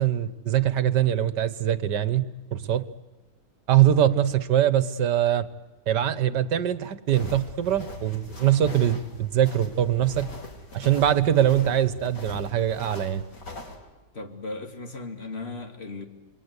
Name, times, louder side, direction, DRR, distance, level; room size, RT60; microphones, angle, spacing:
voice 1, 0.0-2.8 3.7-5.5 5.9-10.3 10.7-13.2, right 11 dB, 75° right, 1.8 m, -23 dB
sound 1, 7.1-13.8, left 1 dB, 80° left, 4.5 m, -41 dB
voice 2, 14.1-16.1, left 3 dB, 35° left, 2.7 m, -36 dB
28.0 x 22.5 x 8.3 m
omnidirectional pair, 1.8 m